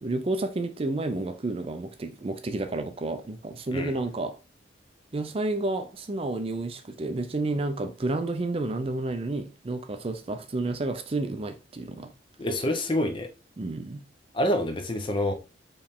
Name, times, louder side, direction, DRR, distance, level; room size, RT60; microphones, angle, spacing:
voice 1, 0.0-4.4 5.1-12.1 13.6-14.0, right 2 dB, 30° right, 0.4 m, -30 dB
voice 2, 12.4-13.3 14.3-15.3, left 1 dB, 25° left, 0.6 m, -27 dB
4.6 x 3.2 x 3.5 m
head